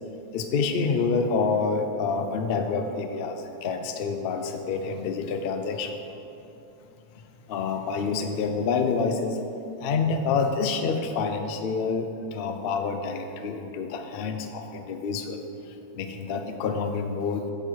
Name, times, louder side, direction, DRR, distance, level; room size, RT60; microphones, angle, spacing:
voice 1, 0.3-6.0 7.5-9.4 9.8-15.4 15.9-17.5, left 5 dB, 65° left, 6 dB, 0.5 m, -27 dB
8.7 x 6.9 x 4.6 m, 2.8 s
omnidirectional pair, 1.7 m